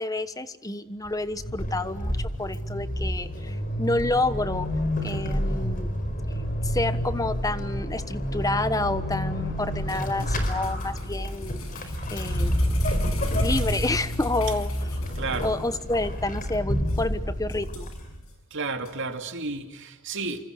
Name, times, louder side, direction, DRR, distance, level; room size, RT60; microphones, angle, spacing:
voice 1, 0.0-4.7 5.0-5.9 6.6-12.5 13.4-14.7 15.4-17.9, left 2 dB, 15° left, 1.2 m, -29 dB
Vehicle / Accelerating revving vroom / Squeak, 1.1-18.3, equal, 40° left, 4.7 m, -29 dB
sound 1, 9.9-15.6 15.9-16.0 16.4-16.5 16.9-17.0 17.5-18.3 18.8-18.9, left 5 dB, 75° left, 7.0 m, -43 dB
voice 2, 15.1-15.5 18.5-20.4, right 3 dB, 60° right, 2.7 m, -32 dB
29.0 x 25.5 x 6.5 m
head